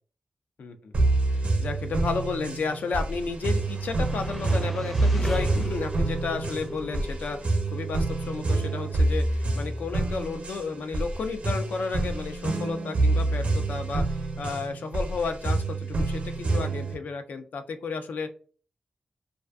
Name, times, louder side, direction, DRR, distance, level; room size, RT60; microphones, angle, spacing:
voice 1, 0.6-0.9 1.3-18.3, left 4 dB, 80° left, 7 dB, 0.4 m, -33 dB
sound 1, 0.9-17.0, right 2 dB, 55° right, 0.6 m, -27 dB
sound 2, 2.8-15.0, equal, ahead, 0.5 m, -40 dB
2.4 x 2.3 x 2.3 m, 0.40 s
cardioid pair, 75°, 3 cm